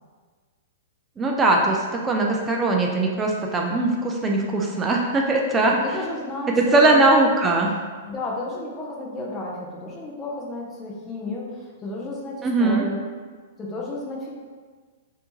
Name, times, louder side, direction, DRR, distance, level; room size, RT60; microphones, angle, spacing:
voice 1, 1.2-5.7 6.6-7.7 12.4-12.9, right 2 dB, 20° right, 0 dB, 0.4 m, -20 dB
voice 2, 5.7-7.2 8.1-13.0 13.6-14.3, left 2 dB, 20° left, -3 dB, 0.6 m, -32 dB
3.3 x 2.7 x 3.0 m, 1.5 s
hypercardioid pair, 120°, 0 cm